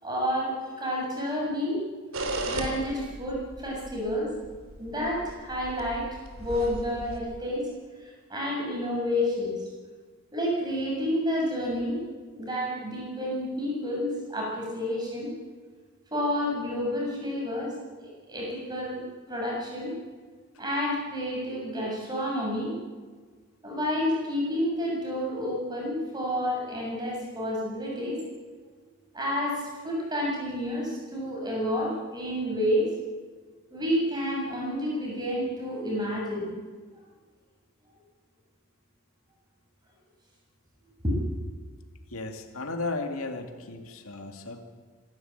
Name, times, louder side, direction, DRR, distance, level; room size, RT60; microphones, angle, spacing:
voice 1, 0.0-1.8 2.4-4.3 4.8-6.1 6.4-7.7 8.0-9.7 10.3-12.1 12.3-15.3 16.1-17.7 18.0-20.0 20.6-22.8 23.6-28.2 29.1-32.9 33.7-36.5 41.0-41.2, equal, 20° right, -2 dB, 7.2 m, -30 dB
sound 1, 2.1-7.2, right 2 dB, 80° right, 3.1 m, -36 dB
voice 2, 42.1-44.6, left 3 dB, 90° left, 4 dB, 2.4 m, -35 dB
26.5 x 12.5 x 9.1 m, 1.5 s
head